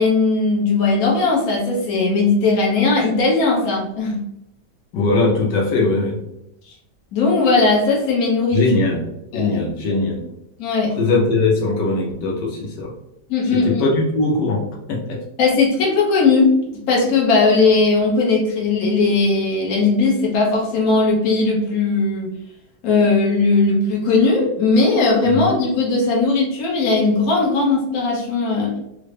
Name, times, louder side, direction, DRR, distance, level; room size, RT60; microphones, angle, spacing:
voice 1, 0.0-4.2 7.1-8.6 9.3-9.6 10.6-10.9 13.3-13.9 15.4-22.3 22.8-28.8, left 3 dB, 60° left, -3 dB, 1.3 m, -18 dB
voice 2, 4.9-6.2 8.5-9.0 9.3-10.2 11.0-12.9 13.5-15.2 25.3-25.4, left 3 dB, 90° left, -2 dB, 1.4 m, -20 dB
3.8 x 2.1 x 3.1 m, 0.83 s
omnidirectional pair, 1.9 m